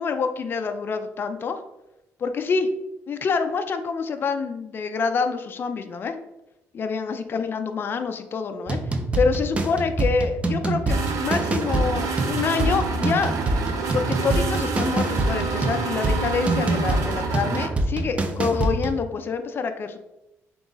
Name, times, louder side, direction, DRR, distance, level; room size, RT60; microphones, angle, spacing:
voice 1, 0.0-1.6 2.2-2.7 3.1-6.2 6.7-8.8 9.2-13.3 13.9-20.0, left 5 dB, 40° left, 7 dB, 0.4 m, -26 dB
sound 1, 8.7-19.0, right 2 dB, 20° right, 0.4 m, -25 dB
sound 2, 10.9-17.7, right 5 dB, 80° right, 0.6 m, -29 dB
3.7 x 3.0 x 3.8 m, 0.90 s
cardioid pair, 125°, 6 cm